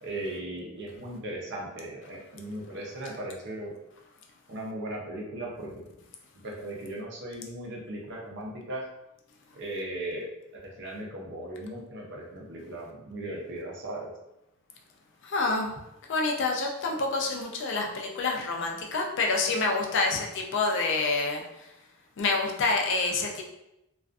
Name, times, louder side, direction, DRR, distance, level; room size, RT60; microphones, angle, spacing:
voice 1, 0.0-3.7 4.5-5.8 6.4-8.8 9.6-10.2 10.5-14.1, right 1 dB, 55° right, -2 dB, 0.6 m, -37 dB
voice 2, 15.2-15.7 16.1-21.4 22.2-23.4, left 3 dB, 55° left, 1 dB, 0.4 m, -27 dB
2.4 x 2.3 x 2.3 m, 0.88 s
head